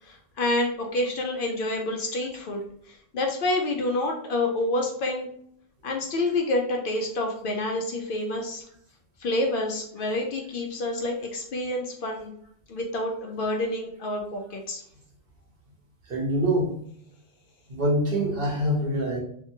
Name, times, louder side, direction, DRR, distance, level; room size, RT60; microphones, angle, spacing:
voice 1, 0.0-5.3 5.8-8.6 9.2-12.3 12.7-14.8, left 2 dB, 60° left, 2 dB, 0.7 m, -28 dB
voice 2, 16.1-16.7 17.7-19.2, equal, 65° right, -2 dB, 1.1 m, -24 dB
2.8 x 2.6 x 2.6 m, 0.66 s
omnidirectional pair, 1.1 m